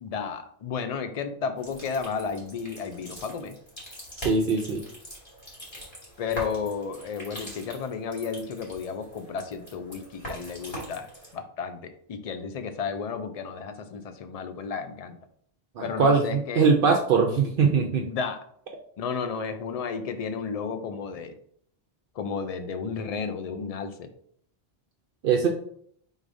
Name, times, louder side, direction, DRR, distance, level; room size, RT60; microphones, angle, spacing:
voice 1, 0.0-3.5 6.2-11.1 11.3-15.2 15.8-16.7 18.0-18.4 19.0-21.4 22.2-24.1, left 5 dB, 50° left, 9 dB, 0.5 m, -33 dB
sound 1, 1.6-11.3, equal, 25° left, 1.7 m, -42 dB
voice 2, 4.2-4.8 15.8-18.1 25.2-25.5, right 5 dB, 65° right, 3 dB, 0.7 m, -22 dB
4.8 x 3.9 x 2.6 m, 0.64 s
omnidirectional pair, 1.0 m